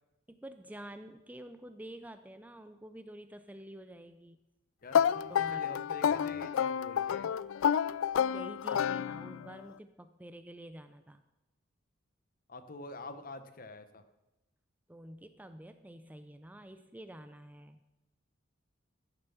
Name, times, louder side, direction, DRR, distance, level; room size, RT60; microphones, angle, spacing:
voice 1, 0.3-4.4 5.0-5.7 6.1-6.4 8.3-11.2 14.9-17.8, right 1 dB, 10° right, 10 dB, 0.4 m, -48 dB
voice 2, 4.8-7.3 12.5-14.0, left 2 dB, 45° left, 11 dB, 0.9 m, -47 dB
sound 1, 4.9-9.5, left 8 dB, 85° left, 0.3 m, -30 dB
14.5 x 7.0 x 6.9 m, 1.0 s
head